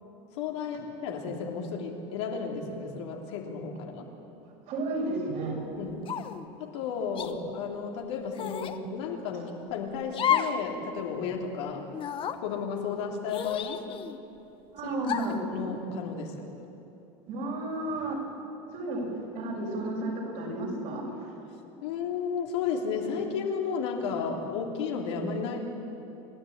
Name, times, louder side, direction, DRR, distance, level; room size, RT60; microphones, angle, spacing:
voice 1, 0.3-4.1 5.7-6.1 6.6-11.9 12.4-13.9 14.8-15.0 15.5-16.4 21.8-25.6, left 6 dB, 90° left, 1 dB, 3.1 m, -33 dB
voice 2, 4.7-5.6 14.7-15.4 17.3-18.2 18.7-21.3, right 2 dB, 60° right, -1 dB, 6.7 m, -32 dB
sound 1, 6.0-6.4 7.1-7.3 8.3-8.8 10.1-10.6 11.0-11.1 11.9-12.4 13.3-14.2 15.0-15.4, left 8 dB, 40° left, 1.1 m, -31 dB
28.0 x 11.0 x 8.7 m, 2.9 s
supercardioid pair, 120°, 14 cm